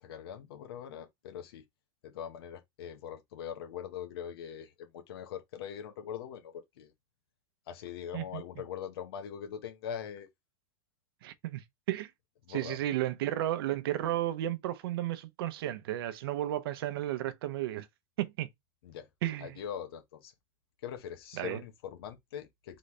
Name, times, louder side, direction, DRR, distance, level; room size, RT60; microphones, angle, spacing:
voice 1, 0.0-1.6 2.0-6.9 7.7-10.3 12.5-12.8 18.8-19.1 19.4-20.3 20.8-22.8, left 8 dB, 75° left, 1.5 m, -42 dB
voice 2, 11.2-12.1 12.5-17.9 18.2-18.5 19.2-19.5 21.4-21.6, right 13 dB, 75° right, 0.8 m, -33 dB
4.0 x 3.8 x 3.3 m
supercardioid pair, 170°, 13 cm